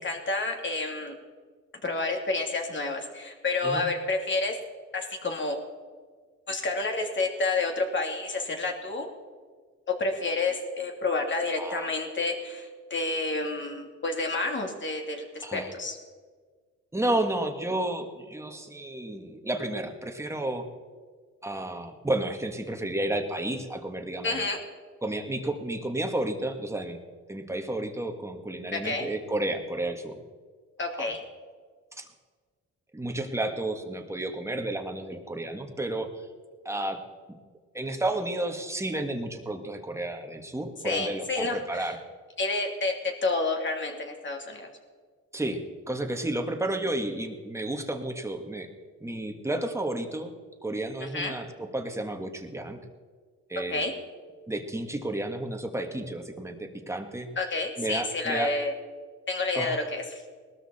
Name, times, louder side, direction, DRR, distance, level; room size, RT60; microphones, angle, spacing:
voice 1, 0.0-1.1 1.8-4.5 4.9-5.6 6.5-9.1 10.0-16.0 24.2-24.6 28.7-29.1 30.8-31.2 40.8-41.9 42.4-42.9 43.2-44.7 51.1-51.3 53.7-53.9 57.4-58.7 59.3-60.2, left 3 dB, 40° left, 2 dB, 2.8 m, -29 dB
voice 2, 11.6-11.9 15.4-15.7 16.9-20.7 21.4-24.4 25.0-27.0 27.3-30.2 31.0-31.1 32.0-32.1 32.9-36.1 36.6-37.0 37.7-42.0 45.3-48.7 49.0-50.3 50.6-52.8 53.5-53.8 54.5-57.3 57.8-58.5 59.5-59.8, right 1 dB, 10° right, 4 dB, 1.7 m, -31 dB
19.5 x 13.0 x 4.3 m, 1.5 s
cardioid pair, 90°, 30 cm